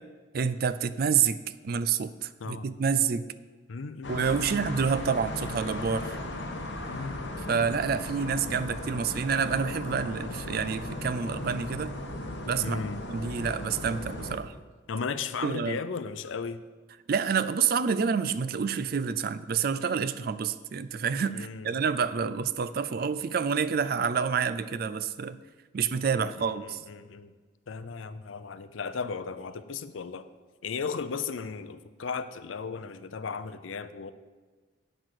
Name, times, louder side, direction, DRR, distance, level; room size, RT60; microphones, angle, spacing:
voice 1, 0.3-1.4 1.6-3.3 4.1-6.2 7.5-11.9 12.5-12.8 13.1-14.5 15.4-15.8 17.1-25.4 25.7-26.8, right 6 dB, 50° right, 14 dB, 0.4 m, -28 dB
voice 2, 3.7-4.6 6.9-7.2 12.6-13.1 14.9-16.6 21.3-21.8 26.1-27.3 27.7-30.3 30.6-34.1, left 5 dB, 90° left, 13 dB, 0.5 m, -36 dB
sound 1, 4.0-14.4, left 1 dB, 70° left, 1.1 m, -37 dB
9.0 x 6.1 x 6.4 m, 1.3 s
head